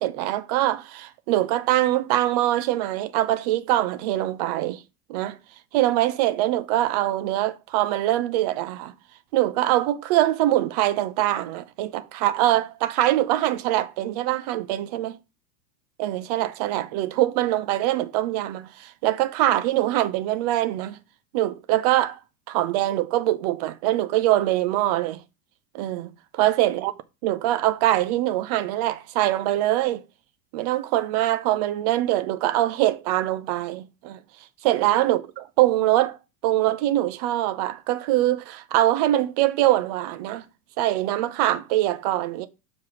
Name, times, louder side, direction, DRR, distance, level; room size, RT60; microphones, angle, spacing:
voice 1, 0.0-4.8 5.1-5.4 5.7-8.9 9.3-15.1 16.0-21.0 21.3-22.2 22.5-25.2 25.7-26.1 26.4-26.9 27.2-30.0 30.5-34.2 34.6-40.4 40.8-42.5, right 14 dB, 25° right, 0.4 m, -23 dB
6.9 x 3.2 x 5.9 m
figure-of-eight pair, 90°, 50 cm